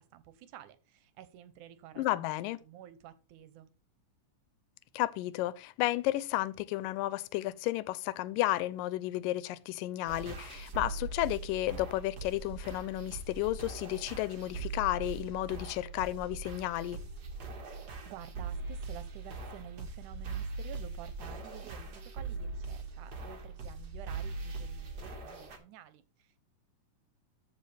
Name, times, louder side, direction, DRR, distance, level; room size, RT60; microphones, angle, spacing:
voice 1, 0.0-3.7 18.0-26.4, right 11 dB, 75° right, 2.1 m, -51 dB
voice 2, 2.0-2.6 4.9-17.0, left 16 dB, 85° left, 2.2 m, -32 dB
sound 1, 10.1-25.6, right 3 dB, 45° right, 1.3 m, -41 dB
14.0 x 4.8 x 3.3 m
omnidirectional pair, 3.8 m